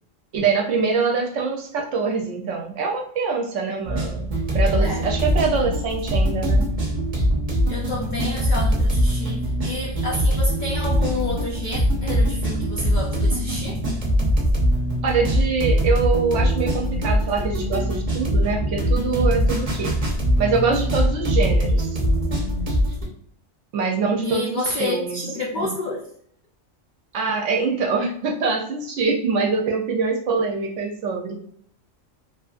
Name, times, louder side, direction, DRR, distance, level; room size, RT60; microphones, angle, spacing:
voice 1, 0.3-6.7 15.0-19.9 20.4-22.0 23.7-25.2 25.6-25.7 27.1-31.4, right 4 dB, 70° right, 1 dB, 0.8 m, -24 dB
sound 1, 3.8-23.0, equal, 40° right, 0.5 m, -22 dB
voice 2, 7.7-13.8 24.2-26.1, left 2 dB, 85° left, -1 dB, 0.4 m, -29 dB
2.7 x 2.5 x 2.4 m, 0.62 s
omnidirectional pair, 1.4 m